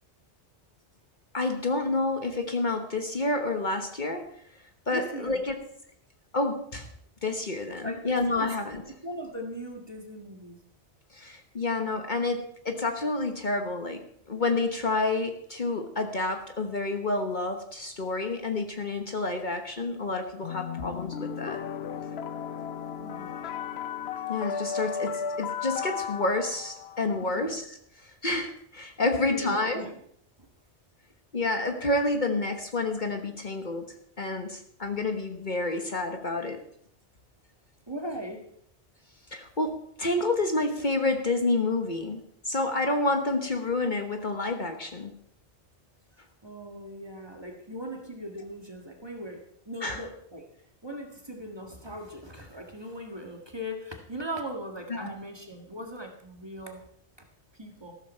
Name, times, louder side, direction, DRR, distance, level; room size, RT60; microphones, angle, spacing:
voice 1, 1.3-4.3 4.9-5.5 6.3-6.9 7.2-8.8 11.1-14.0 14.3-21.6 24.3-27.6 28.0-29.8 31.3-36.6 39.3-45.1 49.8-50.0 54.9-55.1, left 2 dB, 45° left, 5 dB, 1.3 m, -29 dB
voice 2, 4.9-5.4 7.8-8.6 8.9-10.6 23.0-23.3 27.2-27.5 29.0-30.0 30.4-30.5 37.9-38.5 46.4-50.5 50.8-56.8 57.5-58.0, equal, 25° right, 2 dB, 1.9 m, -39 dB
sound 1, 20.4-27.4, left 6 dB, 65° left, 1.0 m, -35 dB
14.0 x 13.0 x 4.4 m, 0.69 s
omnidirectional pair, 1.1 m